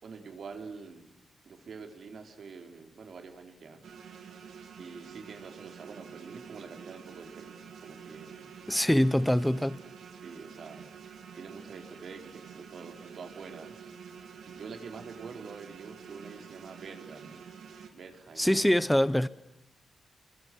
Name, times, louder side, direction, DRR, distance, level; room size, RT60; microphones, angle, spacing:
voice 1, 0.0-1.1 1.4-3.8 4.8-8.7 10.2-10.9 11.3-13.8 14.5-17.4 17.9-18.7, right 5 dB, 65° right, 4.5 m, -46 dB
sound 1, 3.8-17.9, right 7 dB, 85° right, 3.3 m, -48 dB
voice 2, 8.7-9.8 18.4-19.3, equal, 5° left, 1.2 m, -24 dB
29.0 x 23.0 x 6.4 m
cardioid pair, 95°, 0 cm